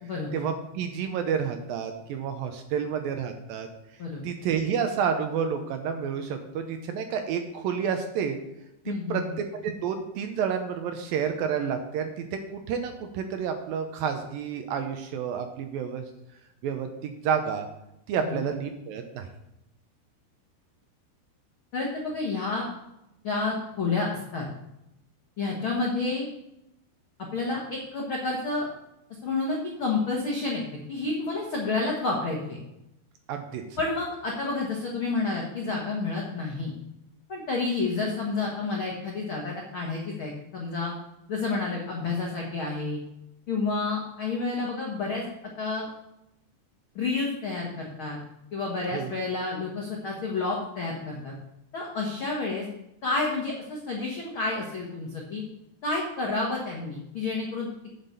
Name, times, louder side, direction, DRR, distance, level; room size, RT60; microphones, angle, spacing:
voice 1, 0.3-3.7 4.2-8.4 8.9-16.0 16.6-17.7 18.1-19.3 33.3-33.6 48.9-49.1, right 7 dB, 80° right, 6 dB, 2.2 m, -30 dB
voice 2, 8.8-9.2 18.3-18.4 21.7-22.6 23.2-24.4 25.4-26.3 27.3-28.7 29.2-30.6 30.9-32.6 33.8-36.7 37.3-40.9 41.3-43.0 43.5-45.2 45.6-45.9 46.9-48.2 48.5-51.3 51.7-52.6 53.0-55.4 55.8-57.7, left 3 dB, 70° left, -2 dB, 1.2 m, -29 dB
9.1 x 6.0 x 6.7 m, 0.86 s
omnidirectional pair, 4.8 m